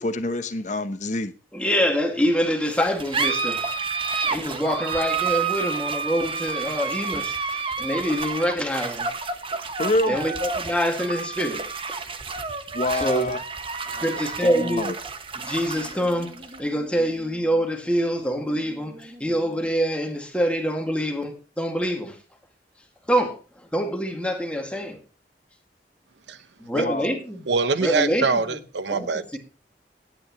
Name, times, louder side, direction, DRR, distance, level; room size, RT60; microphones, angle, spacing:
voice 1, 0.0-1.3 9.8-10.2 12.7-13.4 13.8-14.9 26.7-27.2, left 2 dB, 45° left, 1.0 m, -27 dB
voice 2, 1.5-3.6 4.2-9.1 10.1-11.6 12.9-13.3 13.9-14.9 15.5-16.3 16.6-22.2 23.1-23.4 23.7-25.0 26.6-27.4 27.8-28.4 28.9-29.1 29.3-29.4, equal, 5° left, 2.2 m, -25 dB
sound 1, 2.7-19.7, right 5 dB, 30° right, 1.1 m, -30 dB
voice 3, 27.5-29.4, right 4 dB, 90° right, 0.9 m, -24 dB
17.0 x 9.6 x 3.2 m
head